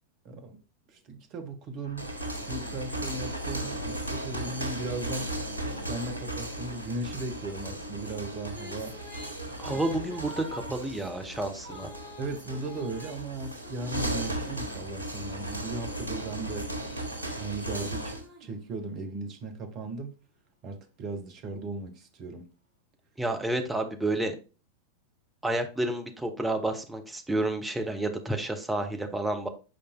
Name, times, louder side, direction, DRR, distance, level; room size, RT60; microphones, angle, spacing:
voice 1, 0.2-0.6 0.9-2.1 2.5-5.3 5.8-9.0 9.7-9.8 12.2-16.8 17.4-20.2 20.6-22.5, right 2 dB, 40° right, 1.5 m, -37 dB
sound 1, 1.8-18.3, right 1 dB, 85° left, 1.4 m, -36 dB
sound 2, 7.7-14.7 15.3-19.1, equal, 55° right, 3.8 m, -47 dB
voice 2, 9.6-11.9 23.2-24.3 25.4-29.5, right 2 dB, 5° right, 1.2 m, -30 dB
7.9 x 5.2 x 2.3 m
figure-of-eight pair, 90°, 0 cm